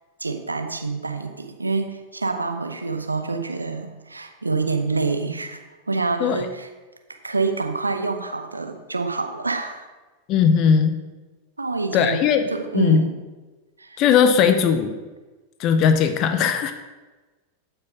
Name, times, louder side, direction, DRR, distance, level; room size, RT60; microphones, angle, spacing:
voice 1, 0.2-5.6 5.9-6.7 7.2-9.8 11.6-12.2 12.5-13.1 13.8-14.0, right 3 dB, 80° right, 6 dB, 0.9 m, -26 dB
voice 2, 10.3-11.0 11.9-12.5 12.7-13.0 14.0-15.0 15.6-16.7, left 7 dB, 40° left, 8 dB, 0.6 m, -18 dB
7.7 x 5.8 x 5.7 m, 1.2 s
figure-of-eight pair, 90°, 0 cm